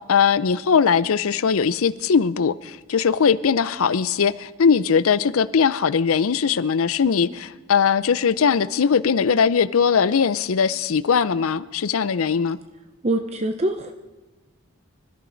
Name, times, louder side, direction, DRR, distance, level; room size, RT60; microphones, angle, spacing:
voice 1, 0.1-12.6, left 6 dB, 80° left, 0.5 m, -20 dB
voice 2, 13.0-13.9, right 1 dB, 30° right, 0.6 m, -24 dB
25.5 x 13.5 x 4.0 m
head